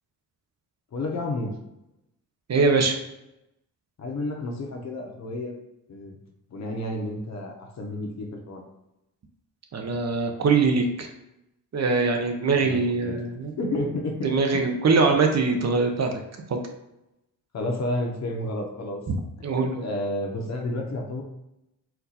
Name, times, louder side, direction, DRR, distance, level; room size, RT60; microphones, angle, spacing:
voice 1, 0.9-1.6 4.0-5.6 5.9-6.2 6.5-8.6 12.5-13.2 13.6-14.3 17.5-19.0 19.6-21.2, left 1 dB, 50° left, 1 dB, 1.0 m, -31 dB
voice 2, 2.5-3.0 9.7-11.1 11.7-13.5 14.2-16.1 16.5-16.7 19.4-19.8, right 4 dB, 50° right, 3 dB, 0.7 m, -22 dB
4.5 x 2.6 x 4.1 m, 0.89 s
wide cardioid pair, 130°, 34 cm